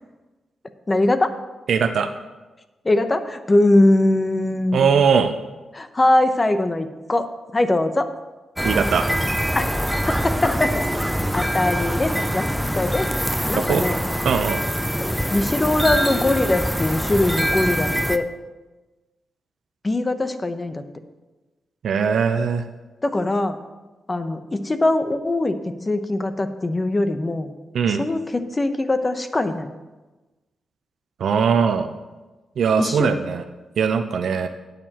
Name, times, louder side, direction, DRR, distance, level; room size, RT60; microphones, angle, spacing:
voice 1, 0.9-1.3 2.8-4.9 5.7-7.3 7.5-8.1 9.5-9.7 10.1-10.8 11.3-12.5 12.8-13.1 13.5-14.0 15.0-18.3 19.8-20.8 23.0-23.6 24.1-25.6 25.9-27.5 27.9-29.7 32.8-33.2, left 2 dB, 25° left, 9 dB, 0.8 m, -21 dB
voice 2, 1.7-2.1 4.7-5.4 8.6-9.1 13.6-13.8 14.2-14.6 21.8-22.6 27.7-28.1 31.2-31.9 32.6-33.4 33.8-34.5, right 6 dB, 75° right, 9 dB, 0.6 m, -20 dB
Suburb Morning Garden, 8.6-18.2, equal, ahead, 0.5 m, -24 dB
18.5 x 6.7 x 3.0 m, 1.2 s
cardioid pair, 75°, 0 cm